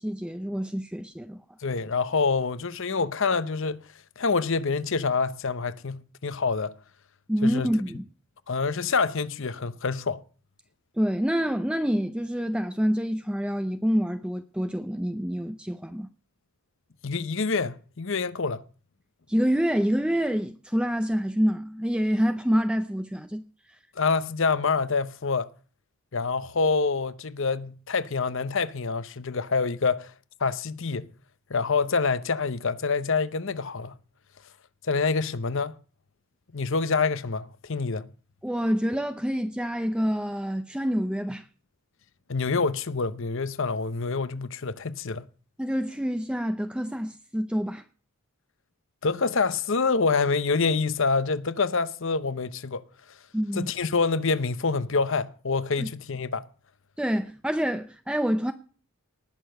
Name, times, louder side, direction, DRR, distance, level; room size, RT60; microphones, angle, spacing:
voice 1, 0.0-1.4 7.3-8.0 11.0-16.1 19.3-23.4 38.4-41.5 45.6-47.8 53.3-53.7 55.8-55.9 57.0-58.5, equal, 5° right, 0.6 m, -27 dB
voice 2, 1.6-3.8 4.2-6.7 7.4-7.7 8.5-10.2 17.0-18.6 24.0-25.5 26.1-30.1 30.4-31.1 31.5-33.9 34.9-35.7 36.5-38.1 42.3-45.3 49.0-52.8 53.5-56.5, left 4 dB, 60° left, 0.8 m, -26 dB
19.0 x 6.8 x 6.6 m
head